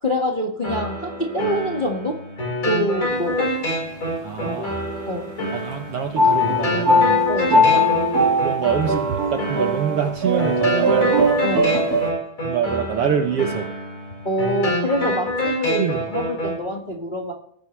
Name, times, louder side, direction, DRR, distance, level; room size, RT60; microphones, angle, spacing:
voice 1, 0.0-2.2 2.6-3.5 4.4-4.6 5.1-5.3 7.3-7.6 11.4-11.8 14.2-17.3, equal, 20° left, 0 dB, 1.3 m, -25 dB
sound 1, 0.6-16.6, left 1 dB, 40° left, 5.6 m, -27 dB
sound 2, 3.1-3.9 4.6-5.2 6.2-12.1, equal, 30° right, 2.4 m, -20 dB
voice 2, 4.2-4.7 5.5-7.2 7.5-7.9 8.4-11.1 12.4-13.7 15.8-16.0, right 7 dB, 65° right, 5 dB, 1.6 m, -25 dB
20.0 x 9.4 x 3.3 m, 0.71 s
omnidirectional pair, 3.5 m